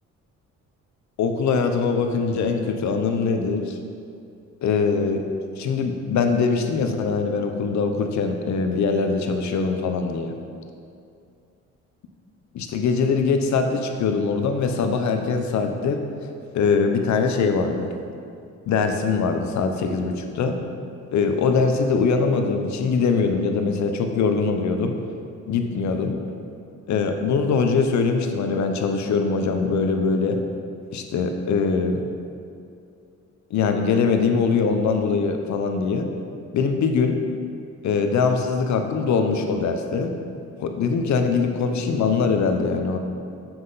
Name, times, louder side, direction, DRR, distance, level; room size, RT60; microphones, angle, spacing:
voice 1, 1.2-3.8 4.6-5.2 5.6-10.4 12.5-16.0 16.5-17.9 18.7-20.6 21.1-25.0 25.5-26.2 26.9-30.4 30.9-32.1 33.5-36.1 36.5-37.2 37.8-40.1 40.6-43.0, left 5 dB, 70° left, 5 dB, 0.8 m, -22 dB
7.6 x 5.9 x 4.0 m, 2.5 s
cardioid pair, 90°, 30 cm